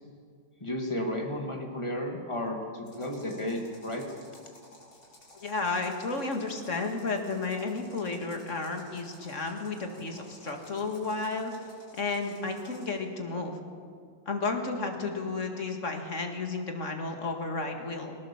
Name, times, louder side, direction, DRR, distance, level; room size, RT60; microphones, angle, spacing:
voice 1, 0.6-4.0, left 1 dB, 15° left, 1 dB, 2.6 m, -33 dB
sound 1, 2.8-13.0, left 1 dB, 75° left, 5.3 m, -55 dB
voice 2, 5.3-11.5 11.9-13.6 14.3-18.2, left 3 dB, 45° left, 3 dB, 2.3 m, -32 dB
20.5 x 18.5 x 7.2 m, 2.1 s
omnidirectional pair, 2.0 m